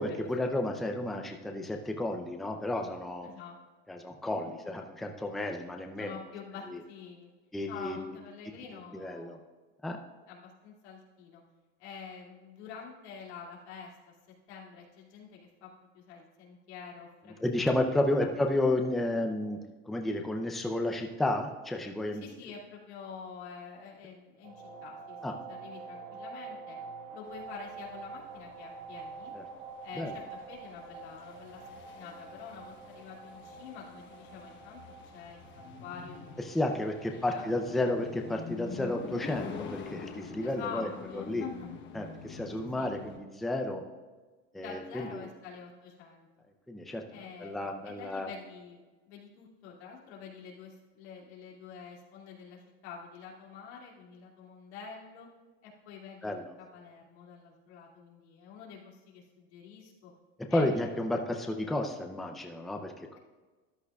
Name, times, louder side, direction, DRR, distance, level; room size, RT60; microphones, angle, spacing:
voice 1, 0.0-3.3 3.9-6.2 6.7-6.8 7.5-8.2 8.9-9.4 9.8-10.0 17.4-19.6 19.9-22.2 25.2-25.3 29.3-29.4 30.0-30.1 36.5-40.9 41.2-41.4 41.9-43.8 44.5-45.3 46.7-47.0 47.4-48.3 56.2-56.5 60.5-63.2, left 1 dB, ahead, 3 dB, 0.5 m, -32 dB
voice 2, 3.2-3.5 4.3-4.6 6.0-7.3 7.7-9.4 10.3-11.4 11.8-13.9 14.5-15.7 15.9-17.4 17.9-18.3 22.2-25.2 25.5-26.8 27.1-29.3 29.8-30.2 30.5-31.6 31.9-34.8 35.1-37.5 40.4-41.7 42.5-43.0 44.5-46.3 47.1-48.8 49.1-55.3 55.6-56.3 56.6-60.1 60.5-60.9, left 6 dB, 90° left, -3 dB, 2.5 m, -47 dB
sound 1, 24.4-43.0, right 4 dB, 60° right, 2.7 m, -48 dB
sound 2, 27.3-43.2, left 5 dB, 35° left, 1.1 m, -46 dB
13.0 x 10.5 x 2.4 m, 1.3 s
supercardioid pair, 145°, 32 cm